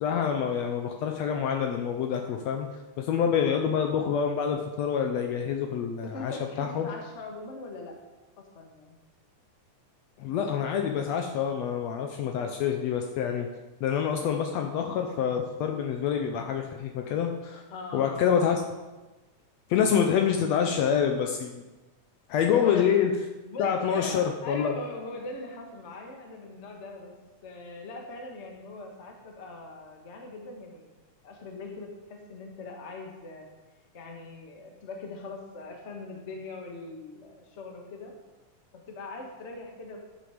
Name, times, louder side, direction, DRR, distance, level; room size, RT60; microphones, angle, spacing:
voice 1, 0.0-2.7 3.0-6.9 10.2-13.5 13.8-17.6 17.9-18.6 19.7-21.6 22.3-23.1 23.6-24.7, left 8 dB, 75° left, 4 dB, 1.7 m, -27 dB
voice 2, 6.0-8.0 8.4-9.0 17.7-18.2 22.5-22.9 23.4-27.1 27.4-31.0 31.2-33.5 33.9-38.1 38.7-40.0, left 3 dB, 40° left, 1 dB, 1.1 m, -41 dB
10.5 x 7.4 x 5.0 m, 1.1 s
omnidirectional pair, 3.5 m